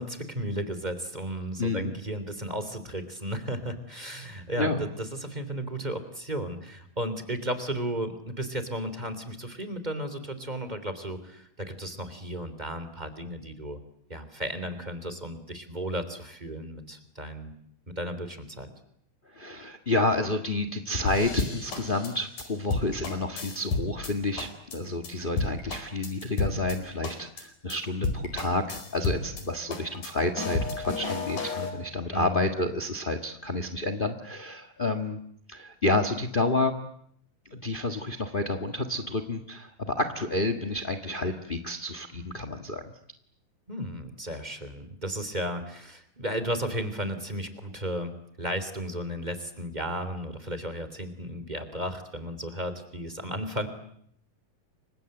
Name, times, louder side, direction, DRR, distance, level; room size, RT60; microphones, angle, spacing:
voice 1, 0.0-13.8 14.1-17.5 17.9-18.7 32.1-32.4 43.7-53.7, right 1 dB, 15° right, 10 dB, 2.9 m, -34 dB
voice 2, 1.6-1.9 4.6-4.8 19.3-35.2 35.5-36.7 37.5-42.8, left 2 dB, 30° left, 9 dB, 0.9 m, -29 dB
sound 1, 21.1-24.1 24.4-24.8 25.0-25.1 25.4-26.8 27.0-27.4 27.7-27.8 28.0-29.4 29.7-31.7, left 3 dB, 65° left, 6.1 m, -32 dB
30.0 x 25.5 x 7.9 m, 0.69 s
omnidirectional pair, 4.0 m